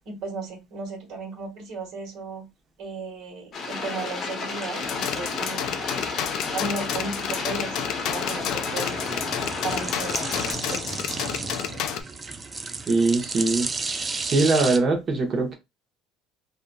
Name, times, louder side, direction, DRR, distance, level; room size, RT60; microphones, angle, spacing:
voice 1, 0.0-2.4 2.8-5.9 6.5-11.0, right 3 dB, 60° right, 1.4 m, -35 dB
sound 1, 3.5-10.5, left 3 dB, 40° left, 0.7 m, -32 dB
sound 2, 4.8-12.0, left 9 dB, 60° left, 0.4 m, -31 dB
sound 3, 5.8-14.8, right 4 dB, 20° right, 0.4 m, -34 dB
voice 2, 12.9-13.7 14.2-15.6, right 3 dB, 35° right, 0.9 m, -22 dB
2.7 x 2.4 x 2.2 m
cardioid pair, 115°, 0 cm